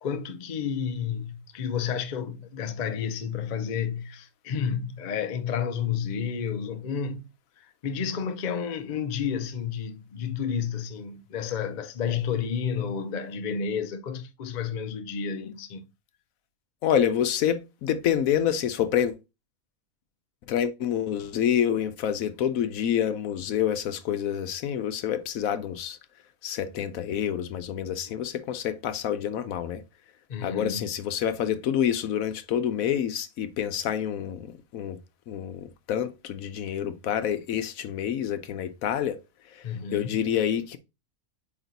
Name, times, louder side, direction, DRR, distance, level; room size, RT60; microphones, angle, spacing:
voice 1, 0.0-7.3 7.6-15.9 30.3-30.9 39.6-40.2, left 7 dB, 50° left, 0.5 m, -31 dB
voice 2, 16.8-19.2 20.5-26.0 26.4-29.8 30.4-35.0 35.3-39.2 39.5-39.6 39.9-40.8, left 9 dB, 75° left, 1.0 m, -27 dB
8.4 x 2.9 x 4.0 m
omnidirectional pair, 1.5 m